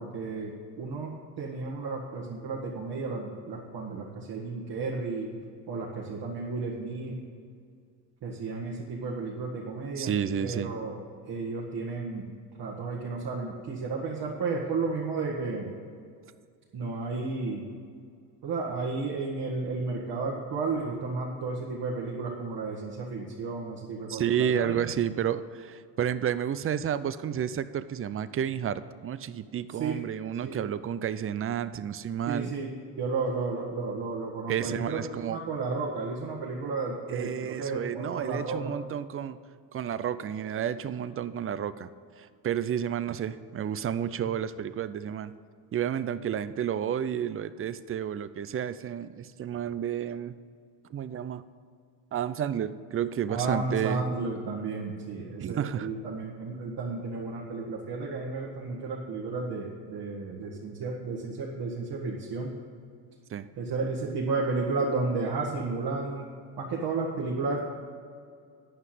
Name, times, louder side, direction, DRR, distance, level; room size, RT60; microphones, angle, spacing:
voice 1, 0.0-5.3 5.7-7.2 8.2-10.1 10.4-11.0 11.3-12.2 12.6-15.7 16.7-17.7 18.4-24.9 29.8-30.0 30.4-30.6 32.3-38.8 53.3-62.5 63.6-66.3 66.6-67.7, right 3 dB, 55° right, -3 dB, 1.8 m, -33 dB
voice 2, 10.0-10.7 24.1-32.5 34.5-35.4 37.1-39.4 39.7-41.9 42.2-45.3 45.7-50.3 50.9-51.4 52.1-54.0 55.4-55.9 63.3-63.5, right 9 dB, 30° right, 14 dB, 0.5 m, -31 dB
9.5 x 5.7 x 7.8 m, 2.2 s
hypercardioid pair, 65°, 49 cm